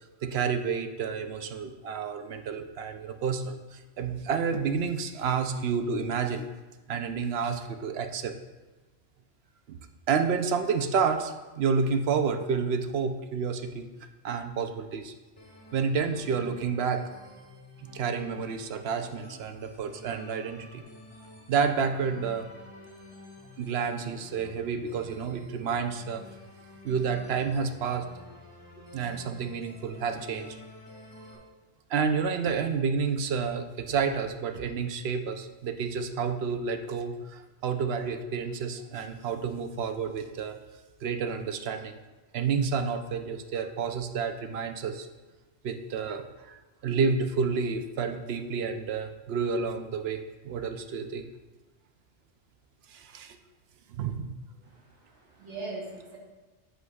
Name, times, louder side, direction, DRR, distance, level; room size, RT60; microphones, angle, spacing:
voice 1, 0.2-6.4 6.9-8.3 9.7-9.8 10.1-13.9 14.2-15.1 15.7-17.0 17.8-20.8 21.5-22.5 23.6-26.2 26.8-28.1 28.9-30.6 31.9-40.6 41.0-42.0 42.3-45.1 45.6-51.2 52.9-53.4 53.9-54.3, right 5 dB, 65° right, 7 dB, 0.8 m, -30 dB
sound 1, 15.4-31.4, left 1 dB, 15° left, 1.6 m, -50 dB
voice 2, 54.6-56.2, right 3 dB, 85° right, -3 dB, 1.5 m, -41 dB
8.0 x 7.9 x 2.3 m, 1.2 s
omnidirectional pair, 1.2 m